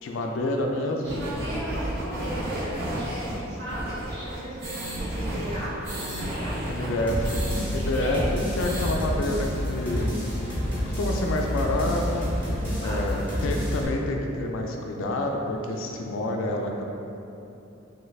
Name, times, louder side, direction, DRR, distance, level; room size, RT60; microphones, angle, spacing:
voice 1, 0.0-1.3 6.7-7.3 7.6-8.2 8.6-10.1 10.9-12.3 12.8-16.8, left 1 dB, 70° left, 2 dB, 0.3 m, -28 dB
voice 2, 1.0-6.5 7.7-8.3 12.6-13.2, right 1 dB, 85° right, -14 dB, 1.0 m, -36 dB
sound 1, 1.1-7.6 8.0-8.1 8.4-9.0, right 1 dB, 45° right, 0.8 m, -32 dB
sound 2, 7.1-13.8, left 1 dB, 25° right, 1.2 m, -28 dB
3.3 x 2.3 x 3.2 m, 2.8 s
head